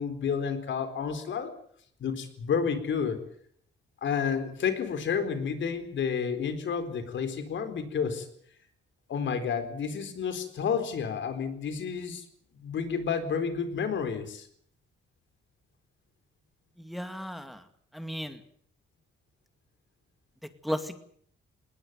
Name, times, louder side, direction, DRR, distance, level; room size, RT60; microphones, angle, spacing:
voice 1, 0.0-1.5 2.0-3.2 4.0-8.3 9.1-12.2 12.6-14.5, left 6 dB, 70° left, 9 dB, 4.2 m, -30 dB
voice 2, 16.8-17.6 17.9-18.4 20.6-21.1, equal, ahead, 8 dB, 2.3 m, -35 dB
20.0 x 19.5 x 9.3 m, 0.63 s
cardioid pair, 95°, 20 cm